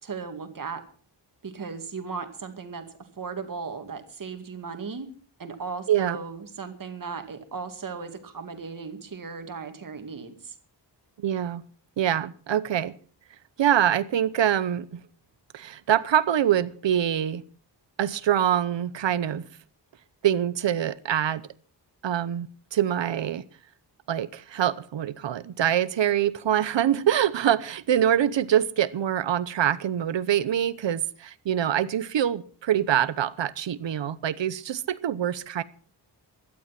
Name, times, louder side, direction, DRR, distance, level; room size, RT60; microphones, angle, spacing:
voice 1, 0.0-0.8 1.4-2.8 3.2-5.1 5.4-10.6, right 5 dB, 50° right, 2.3 m, -36 dB
voice 2, 11.2-11.6 12.0-12.9 13.6-15.0 15.5-17.4 18.0-19.5 20.2-21.4 22.0-23.4 24.1-35.6, right 10 dB, 90° right, 0.9 m, -25 dB
16.5 x 12.5 x 5.9 m
wide cardioid pair, 180°, 43 cm